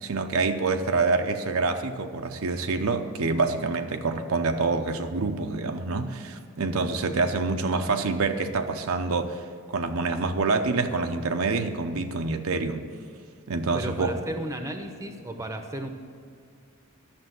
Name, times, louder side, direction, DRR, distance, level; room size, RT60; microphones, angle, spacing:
voice 1, 0.0-9.4 9.7-12.9 13.5-14.1, right 3 dB, 70° right, 6 dB, 0.7 m, -26 dB
voice 2, 13.7-15.9, right 1 dB, 15° right, 6 dB, 0.8 m, -34 dB
11.5 x 6.8 x 7.9 m, 2.3 s
head